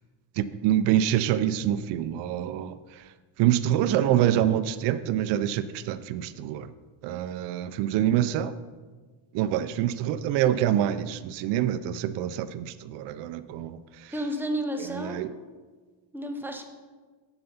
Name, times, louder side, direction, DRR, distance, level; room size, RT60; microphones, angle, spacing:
voice 1, 0.4-3.0 3.4-6.7 7.0-8.5 9.3-14.1 15.0-15.3, right 11 dB, 60° right, 13 dB, 0.5 m, -26 dB
voice 2, 14.1-15.3 16.1-16.6, equal, 5° right, 4 dB, 0.6 m, -31 dB
8.0 x 7.8 x 5.6 m, 1.4 s
cardioid pair, 175°, 48 cm